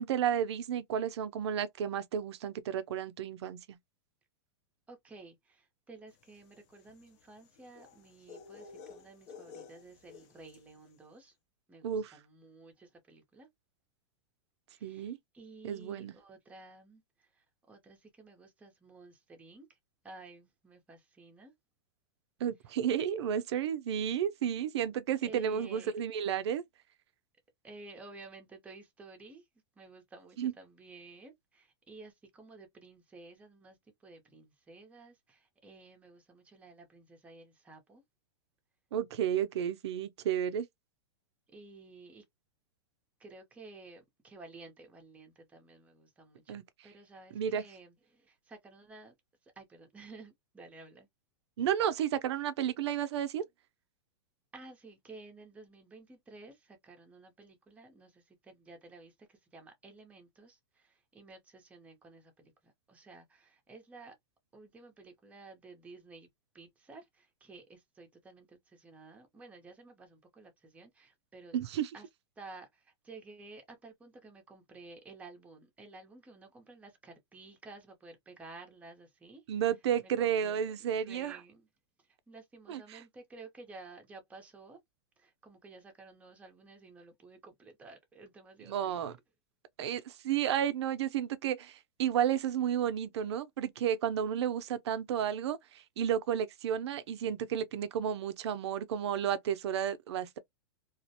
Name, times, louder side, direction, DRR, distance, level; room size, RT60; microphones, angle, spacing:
voice 1, 0.0-3.8 11.8-12.1 14.8-15.2 15.6-16.1 22.4-26.6 30.4-30.5 38.9-40.7 46.5-46.6 47.3-47.6 51.6-53.4 71.5-71.9 79.5-81.4 82.7-83.0 88.7-89.2 89.8-100.4, right 9 dB, 75° right, 0.5 m, -32 dB
voice 2, 4.9-11.4 11.7-13.5 14.7-19.8 20.0-21.5 25.2-25.9 27.6-29.5 29.8-38.0 41.5-42.2 43.2-46.6 46.8-49.1 49.4-51.1 54.5-64.1 64.5-66.3 66.5-71.6 71.9-72.1 72.4-79.4 80.0-80.6 80.9-81.7 82.0-84.8 85.2-89.0, right 3 dB, 10° right, 0.6 m, -53 dB
sound 1, 6.2-10.8, left 5 dB, 45° left, 0.7 m, -52 dB
2.4 x 2.1 x 2.7 m
supercardioid pair, 150°, 14 cm